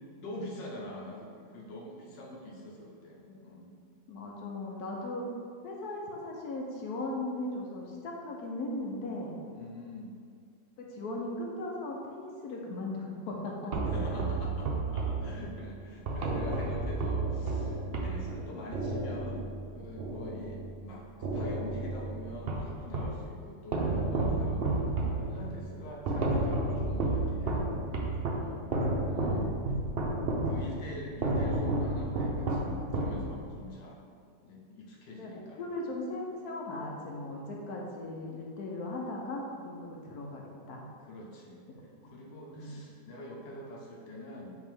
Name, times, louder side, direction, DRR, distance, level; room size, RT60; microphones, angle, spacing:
voice 1, 0.2-3.7 9.5-10.1 13.9-27.7 28.3-28.6 29.1-29.5 30.2-34.0 34.4-35.6 41.0-44.5, left 1 dB, 85° left, -2 dB, 1.7 m, -45 dB
voice 2, 3.2-3.8 4.1-5.3 5.6-9.4 10.8-13.7 28.9-29.4 35.1-40.9 42.0-42.1 42.5-42.8, left 2 dB, 65° left, -1 dB, 1.2 m, -38 dB
sound 1, 13.7-20.8 21.2-23.2 23.7-33.6, right 2 dB, 65° right, 0.6 m, -32 dB
8.1 x 3.6 x 3.5 m, 2.1 s
omnidirectional pair, 1.9 m